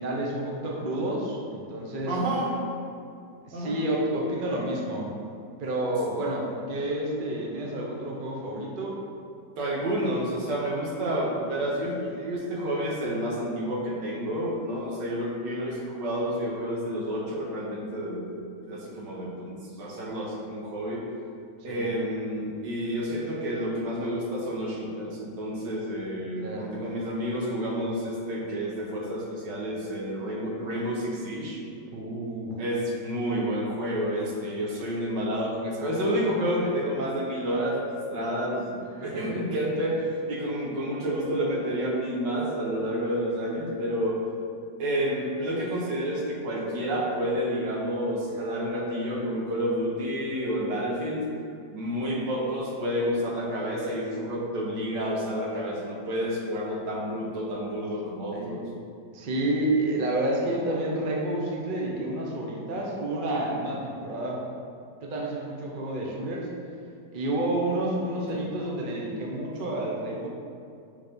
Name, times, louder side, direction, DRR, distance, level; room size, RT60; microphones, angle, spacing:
voice 1, 0.0-2.1 3.4-5.1 5.6-9.0 21.7-21.9 26.4-26.7 31.9-32.6 39.1-39.4 58.3-58.6 59.1-64.4 65.0-66.5 67.1-70.3, right 1 dB, 35° right, -2 dB, 0.9 m, -29 dB
voice 2, 2.1-2.6 3.5-3.8 9.6-21.1 21.6-31.6 32.6-44.2 44.8-51.3 51.7-58.6 68.3-68.5, equal, 85° right, -2 dB, 1.7 m, -29 dB
5.8 x 4.4 x 5.1 m, 2.5 s
omnidirectional pair, 1.9 m